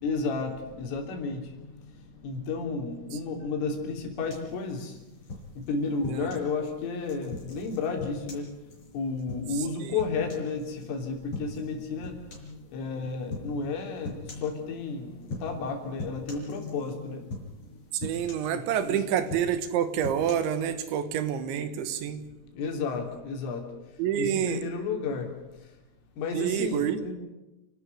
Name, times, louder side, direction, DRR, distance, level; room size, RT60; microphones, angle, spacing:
voice 1, 0.0-1.4 2.2-4.9 5.7-8.5 8.9-12.2 12.5-15.1 15.4-17.2 18.5-19.0 22.6-23.6 24.2-25.3 26.2-27.1, left 4 dB, 85° left, 3 dB, 5.8 m, -32 dB
sound 1, 4.3-6.5 7.0-10.8 11.3-11.7 12.0-12.6 13.3-13.5 14.0-14.6 15.2-15.7 16.0-17.0 17.3-17.7 18.0-18.9 19.2-20.3, left 3 dB, 30° left, 5.8 m, -41 dB
voice 2, 9.6-10.0 17.9-22.2 24.0-24.6 26.3-27.1, right 9 dB, 75° right, 11 dB, 3.5 m, -28 dB
30.0 x 12.5 x 9.4 m, 1.0 s
omnidirectional pair, 5.6 m